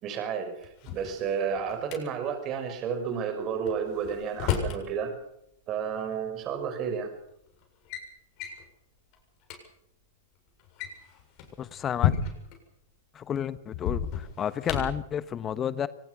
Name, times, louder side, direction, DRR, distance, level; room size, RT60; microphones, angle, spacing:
voice 1, 0.0-5.2 5.7-7.1, right 7 dB, 35° right, 7 dB, 5.8 m, -31 dB
Drawer open or close, 0.6-2.0 3.7-4.8 6.1-6.2 7.0-7.3 7.6-8.1 8.4-8.6 9.1-9.2 9.4-9.6 10.6-12.6 13.7-15.1, left 9 dB, 45° left, 7.3 m, -31 dB
voice 2, 11.6-12.1 13.1-15.9, left 9 dB, 25° left, 16 dB, 1.1 m, -31 dB
24.0 x 19.5 x 6.3 m, 0.77 s
hypercardioid pair, 110°, 0 cm